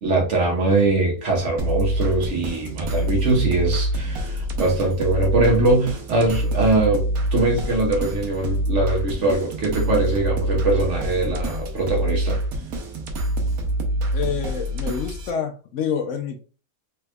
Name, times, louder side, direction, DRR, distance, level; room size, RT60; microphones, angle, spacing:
voice 1, 0.0-7.0 7.3-12.4, right 2 dB, 60° right, 1.3 m, -22 dB
sound 1, 1.6-15.3, right 1 dB, 90° right, 1.2 m, -26 dB
voice 2, 14.1-16.4, left 7 dB, 70° left, 0.8 m, -27 dB
3.4 x 3.2 x 2.3 m
omnidirectional pair, 1.5 m